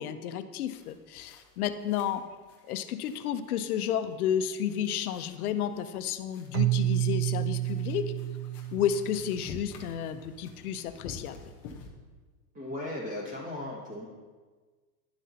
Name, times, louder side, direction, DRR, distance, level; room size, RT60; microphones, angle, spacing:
voice 1, 0.0-2.2 2.6-8.0 8.7-11.5, left 9 dB, 65° left, 10 dB, 0.8 m, -31 dB
sound 1, 0.7-11.9, left 4 dB, 15° left, 0.4 m, -50 dB
Keyboard (musical), 6.5-9.5, right 15 dB, 80° right, 0.8 m, -29 dB
voice 2, 12.5-14.0, left 1 dB, 15° right, -4 dB, 1.9 m, -36 dB
11.0 x 7.3 x 2.9 m, 1.4 s
supercardioid pair, 160°, 48 cm